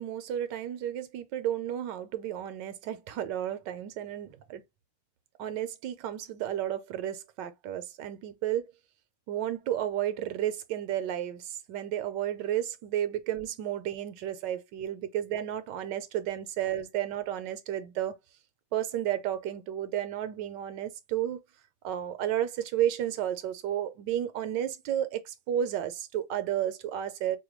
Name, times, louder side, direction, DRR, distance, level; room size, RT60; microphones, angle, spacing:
voice 1, 0.0-4.6 5.4-8.7 9.3-18.1 18.7-21.4 21.8-27.4, right 11 dB, 75° right, 1.2 m, -32 dB
4.9 x 2.2 x 3.0 m
omnidirectional pair, 2.0 m